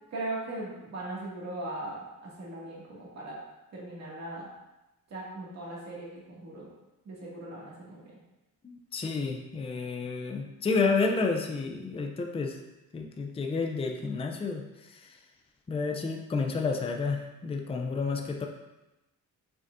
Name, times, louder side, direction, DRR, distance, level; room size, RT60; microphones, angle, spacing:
voice 1, 0.1-3.4 3.7-4.5 5.1-6.7 7.1-8.0 18.0-18.2, right 2 dB, 50° right, -6 dB, 2.2 m, -39 dB
voice 2, 8.6-12.6 12.9-14.6 14.9-15.2 15.7-18.5, left 4 dB, 15° left, 3 dB, 0.5 m, -30 dB
6.8 x 6.2 x 2.6 m, 0.98 s
cardioid pair, 160°, 35 cm